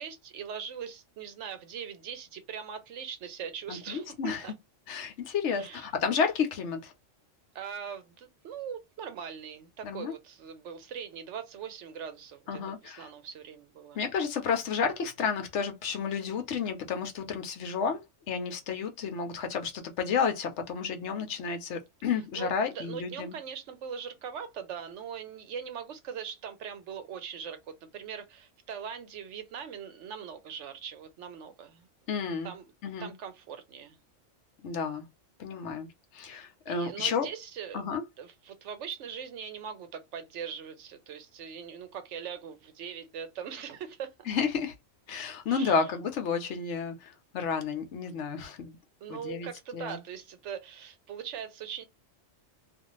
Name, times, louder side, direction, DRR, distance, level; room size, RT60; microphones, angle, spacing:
voice 1, 0.0-4.5 5.6-5.8 7.5-14.0 22.3-31.9 32.2-32.7 33.0-34.0 36.7-37.8 38.2-44.3 45.5-45.9 49.0-51.9, right 7 dB, 70° right, 0.9 m, -41 dB
voice 2, 3.7-4.4 4.9-6.9 9.8-10.1 12.5-13.1 13.9-23.3 32.1-32.5 32.8-33.1 34.6-35.0 35.4-37.3 37.7-38.0 44.3-44.7 45.1-48.8 49.1-50.0, left 6 dB, 70° left, 0.9 m, -31 dB
2.5 x 2.4 x 3.0 m
omnidirectional pair, 1.3 m